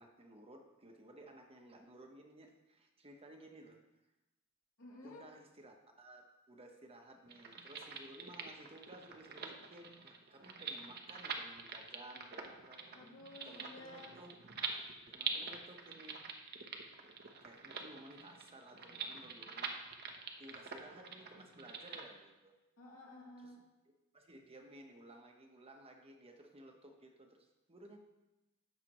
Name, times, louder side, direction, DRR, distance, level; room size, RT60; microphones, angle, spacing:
voice 1, 0.0-3.8 5.0-12.8 13.4-14.3 14.6-16.2 17.4-19.8 20.4-22.5 23.4-23.5 24.1-28.0, right 1 dB, 25° right, 2 dB, 1.1 m, -56 dB
voice 2, 4.8-5.2 12.9-14.1 22.8-23.6, left 1 dB, 75° left, -5 dB, 2.9 m, -53 dB
sound 1, 7.3-22.0, right 5 dB, 50° right, 0.9 m, -45 dB
15.0 x 5.9 x 3.0 m, 1.0 s
head